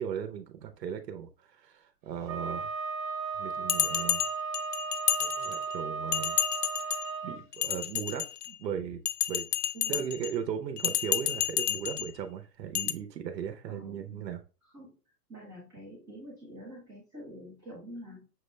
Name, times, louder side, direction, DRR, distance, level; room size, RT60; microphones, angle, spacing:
voice 1, 0.0-2.7 3.4-4.3 5.2-6.4 6.8-7.0 7.2-9.0 9.3-9.4 9.9-14.4, right 8 dB, 85° right, 6 dB, 0.8 m, -37 dB
Wind instrument woodwind instrument, 2.3-7.4, right 5 dB, 50° right, 0.9 m, -35 dB
Bell, 3.7-5.7 6.1-7.1 7.5-8.6 9.1-10.3 10.8-12.1 12.7-12.9, left 13 dB, 70° left, 0.5 m, -30 dB
voice 2, 13.6-14.3 14.7-14.9 15.3-18.2, equal, 5° right, -8 dB, 0.4 m, -46 dB
6.1 x 2.1 x 3.2 m, 0.34 s
hypercardioid pair, 135°, 49 cm